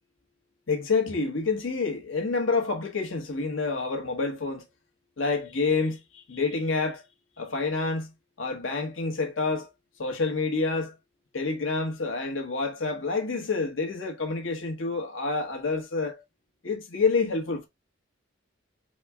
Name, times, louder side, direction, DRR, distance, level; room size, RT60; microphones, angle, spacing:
voice 1, 0.7-4.6 5.2-7.0 7.4-8.1 8.4-9.7 10.0-11.0 11.3-16.2 16.6-17.7, left 4 dB, 85° left, 1.1 m, -28 dB
4.2 x 2.2 x 3.3 m
head